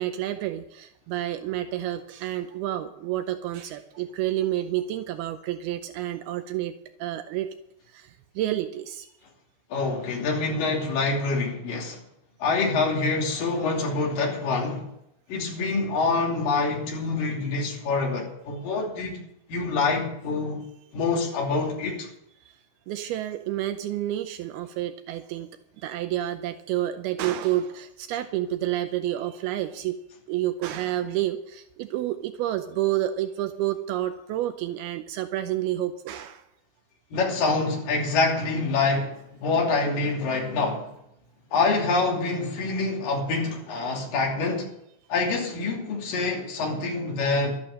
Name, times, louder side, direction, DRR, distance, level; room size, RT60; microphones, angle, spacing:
voice 1, 0.0-6.7 7.0-7.5 7.9-9.1 22.9-25.5 25.8-30.0 30.3-36.4, right 13 dB, 90° right, 2.2 m, -29 dB
voice 2, 9.7-12.0 12.4-14.9 15.3-19.2 19.5-20.6 20.9-22.1 37.1-40.9 41.5-44.7 45.1-47.6, left 3 dB, 50° left, 4.1 m, -26 dB
12.5 x 12.0 x 6.6 m
omnidirectional pair, 5.4 m